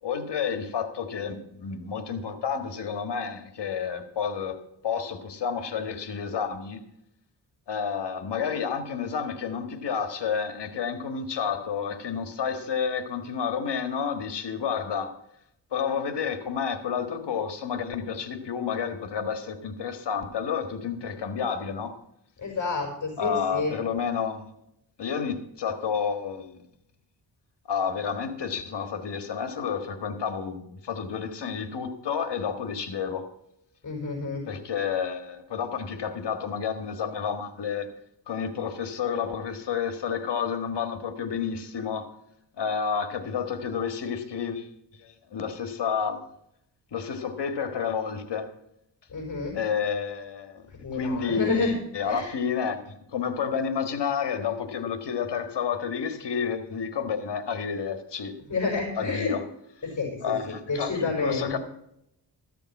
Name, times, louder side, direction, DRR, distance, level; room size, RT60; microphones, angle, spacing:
voice 1, 0.0-4.6 4.8-6.8 7.7-15.1 15.7-22.0 23.2-24.5 25.0-26.6 27.7-33.3 34.5-37.9 38.3-42.1 42.6-44.7 45.0-46.2 46.9-48.5 49.5-50.7 50.9-58.3 59.0-59.4 60.2-61.6, left 6 dB, 70° left, 8 dB, 1.6 m, -30 dB
voice 2, 22.4-23.8 33.8-34.5 49.1-49.6 50.8-51.7 52.0-52.3 58.5-59.3 59.8-60.4 60.6-61.5, left 4 dB, 45° left, 1 dB, 5.3 m, -29 dB
14.0 x 7.0 x 5.9 m, 0.78 s
cardioid pair, 70°, 43 cm